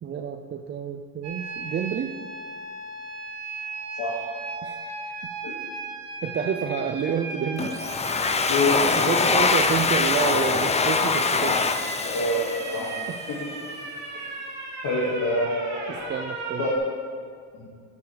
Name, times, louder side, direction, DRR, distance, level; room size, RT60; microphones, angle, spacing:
voice 1, 0.0-2.1 4.6-5.2 6.2-7.7 9.0-11.6 13.1-13.2 15.9-16.7, right 7 dB, 30° right, 4 dB, 0.5 m, -29 dB
sound 1, 1.2-16.8, right 3 dB, 45° right, 2.7 m, -36 dB
voice 2, 4.0-4.3 5.4-5.5 8.5-9.0 12.0-13.0 13.3-13.5 14.1-14.2 14.8-15.9 16.6-16.8 17.6-17.7, left 1 dB, 60° left, -4 dB, 2.1 m, -26 dB
Domestic sounds home sounds, 7.6-13.2, left 4 dB, 15° left, 0.5 m, -23 dB
10.5 x 10.5 x 3.4 m, 2.2 s
cardioid pair, 105°, 40 cm